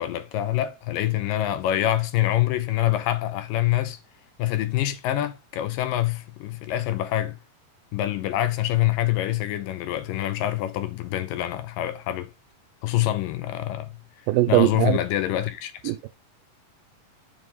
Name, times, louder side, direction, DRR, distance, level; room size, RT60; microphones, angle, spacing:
voice 1, 0.0-4.0 4.4-7.4 7.9-12.3 12.8-13.9 14.5-16.0, left 13 dB, 85° left, 2.4 m, -25 dB
voice 2, 14.3-15.0 15.9-16.1, right 17 dB, 85° right, 2.3 m, -20 dB
7.4 x 3.8 x 5.3 m
omnidirectional pair, 4.0 m